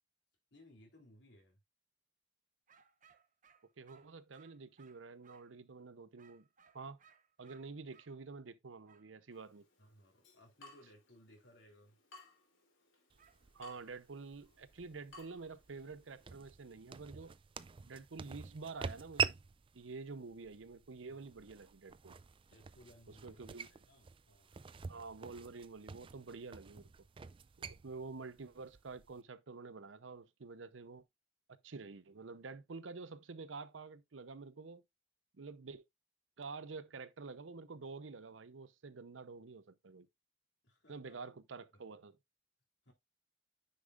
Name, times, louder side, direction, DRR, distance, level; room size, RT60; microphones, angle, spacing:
voice 1, 0.5-1.6 9.8-12.0 21.1-21.3 22.5-24.5 40.6-41.2 42.8-42.9, left 1 dB, 65° left, 3.4 m, -62 dB
sound 1, 2.7-5.6 6.2-8.1 8.9-9.1 13.2-13.8, right 7 dB, 45° right, 1.0 m, -66 dB
voice 2, 3.8-6.5 6.7-7.0 7.4-9.6 13.5-17.3 17.9-19.4 19.7-22.2 23.1-23.7 24.9-26.9 27.8-31.0 31.6-34.8 35.3-35.8 36.4-40.1 40.9-42.2, right 4 dB, 80° right, 0.7 m, -48 dB
Water tap faucet / Drip, 9.3-16.3, left 2 dB, 90° left, 3.2 m, -62 dB
sound 2, 13.1-29.2, right 7 dB, 30° right, 0.4 m, -45 dB
9.8 x 5.5 x 2.4 m
head